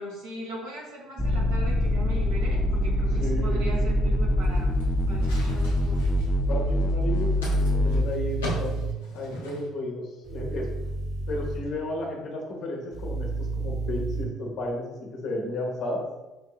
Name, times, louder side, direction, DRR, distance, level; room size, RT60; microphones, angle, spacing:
voice 1, 0.0-4.8 5.1-6.1, right 1 dB, 75° right, -3 dB, 1.3 m, -39 dB
sound 1, 1.2-8.0, left 1 dB, 15° left, 0.4 m, -24 dB
voice 2, 3.2-3.6 6.5-8.8 9.1-10.7 11.3-16.0, left 1 dB, 60° left, -1 dB, 1.1 m, -33 dB
sound 2, 4.4-9.7, equal, 85° left, 0.7 m, -39 dB
sound 3, 4.9-6.2 7.6-8.9 10.3-11.6 12.9-14.2, right 3 dB, 35° right, 1.1 m, -31 dB
5.1 x 2.7 x 2.4 m, 1.1 s
hypercardioid pair, 55°, 0 cm